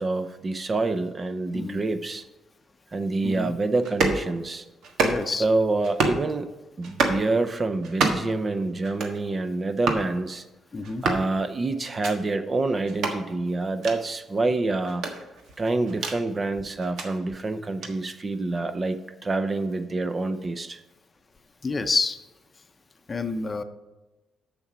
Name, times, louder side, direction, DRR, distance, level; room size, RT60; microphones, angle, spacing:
voice 1, 0.0-2.2 2.9-4.6 5.4-6.5 6.8-10.4 11.0-15.0 15.6-20.8, right 3 dB, 30° right, 10 dB, 0.7 m, -27 dB
sound 1, 3.8-4.2 4.8-5.4 5.8-6.2 6.8-7.2 7.8-8.4 8.8-9.2 9.8-10.1 10.8-11.3 11.8-12.1 12.9-13.2 13.8-14.0 14.9-16.2 16.8-17.1 17.8-17.9, right 3 dB, 80° right, 1.4 m, -27 dB
voice 2, 5.0-5.5 10.7-11.0 21.6-22.2 23.1-23.6, left 3 dB, 30° left, 9 dB, 0.7 m, -28 dB
7.0 x 6.8 x 5.0 m, 1.1 s
cardioid pair, 90°, 0 cm